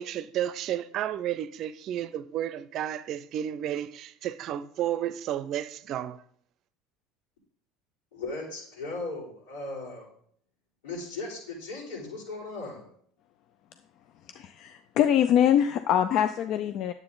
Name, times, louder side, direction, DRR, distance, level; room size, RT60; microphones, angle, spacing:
voice 1, 0.0-6.2, right 11 dB, 55° right, 0.5 m, -32 dB
voice 2, 8.1-10.1 10.8-12.9, left 3 dB, 80° left, 4.7 m, -37 dB
voice 3, 14.3-16.9, left 10 dB, 55° left, 0.5 m, -23 dB
9.6 x 7.9 x 3.9 m
hypercardioid pair, 75°, 0 cm